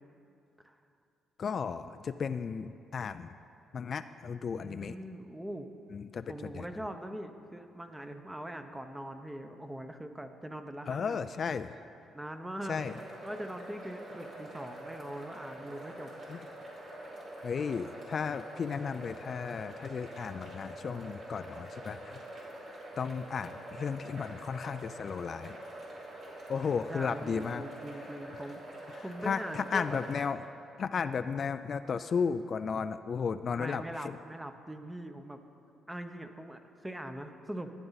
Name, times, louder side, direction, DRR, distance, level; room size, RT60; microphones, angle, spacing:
voice 1, 1.4-3.3 3.7-4.9 5.9-6.2 6.5-6.6 10.9-11.8 12.7-12.9 16.3-16.4 17.4-22.2 23.0-25.6 26.5-27.6 28.9-30.4 30.8-34.2, left 6 dB, 50° left, 11 dB, 0.3 m, -34 dB
voice 2, 4.6-5.7 6.3-11.2 12.1-16.1 26.9-30.0 33.5-35.4 35.9-37.7, right 1 dB, 10° right, 7 dB, 0.8 m, -42 dB
sound 1, 12.8-30.3, right 1 dB, 65° right, 3.0 m, -46 dB
14.5 x 9.1 x 4.0 m, 2.6 s
cardioid pair, 90°, 0 cm